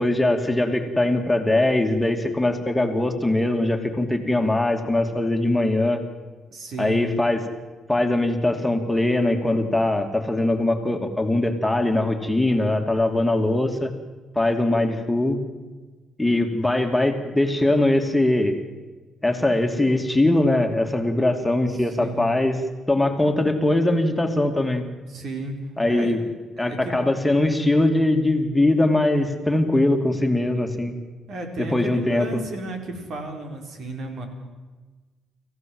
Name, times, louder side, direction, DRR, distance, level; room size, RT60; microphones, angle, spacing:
voice 1, 0.0-6.0 6.8-7.4 7.9-13.9 14.4-15.4 16.2-18.6 19.2-22.6 22.9-24.9 25.8-26.2 26.6-30.9 31.6-32.3, left 1 dB, 10° left, 4 dB, 2.6 m, -21 dB
voice 2, 6.5-7.2 21.8-22.3 25.1-25.6 25.9-26.2 26.6-26.9 31.3-34.3, right 2 dB, 65° right, 4 dB, 4.6 m, -33 dB
26.0 x 15.5 x 7.9 m, 1.3 s
cardioid pair, 85°, 0 cm